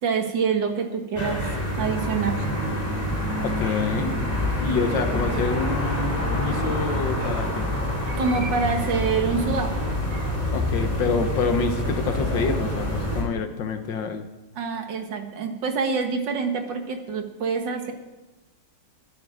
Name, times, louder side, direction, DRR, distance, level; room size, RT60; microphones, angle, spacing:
voice 1, 0.0-1.4 1.8-2.5 8.1-9.7 10.1-10.6 14.6-17.9, right 5 dB, 75° right, 5 dB, 2.1 m, -26 dB
sound 1, 1.2-13.2, left 1 dB, 20° left, 3.1 m, -26 dB
voice 2, 3.4-4.2 4.6-7.7 10.5-14.3, left 5 dB, 75° left, 8 dB, 1.8 m, -27 dB
20.0 x 9.5 x 5.0 m, 1.1 s
omnidirectional pair, 2.0 m